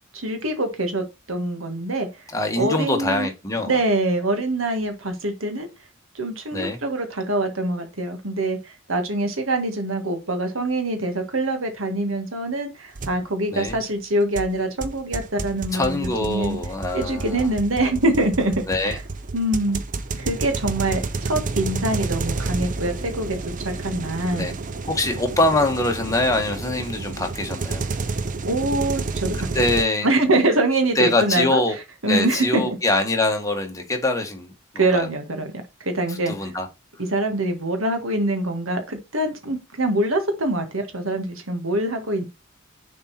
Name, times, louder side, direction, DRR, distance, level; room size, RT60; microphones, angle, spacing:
voice 1, 0.1-2.2 2.6-3.3 3.6-5.7 6.2-16.6 16.9-18.5 18.8-19.0 19.3-19.8 20.2-23.4 23.6-24.5 28.4-29.5 30.0-31.6 32.0-32.8 34.8-35.5 35.8-36.5 37.1-42.3, right 2 dB, 75° right, 1.8 m, -24 dB
voice 2, 2.3-3.8 6.5-6.8 13.5-13.8 15.7-17.5 18.7-19.0 24.3-24.5 24.8-27.8 29.5-30.1 30.9-31.8 32.1-35.1 36.1-36.7, left 2 dB, 15° left, 1.5 m, -23 dB
sound 1, 13.0-13.2 13.7-13.8 14.4-29.8, right 3 dB, 40° right, 0.7 m, -30 dB
6.7 x 4.3 x 4.3 m
head